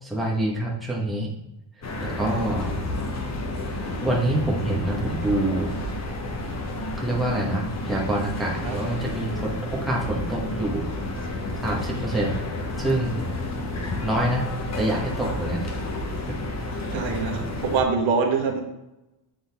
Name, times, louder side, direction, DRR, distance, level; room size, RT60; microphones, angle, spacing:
voice 1, 0.0-1.3 2.0-2.8 4.0-5.8 7.0-10.9 11.6-12.4 12.8-13.2 14.0-14.4 14.8-15.7 16.3-16.4, right 1 dB, ahead, -4 dB, 1.2 m, -26 dB
sound 1, 1.8-17.8, left 1 dB, 35° left, 1.0 m, -31 dB
voice 2, 16.9-18.6, right 5 dB, 70° right, 2 dB, 1.2 m, -24 dB
7.8 x 3.9 x 3.5 m, 0.90 s
cardioid pair, 130°, 49 cm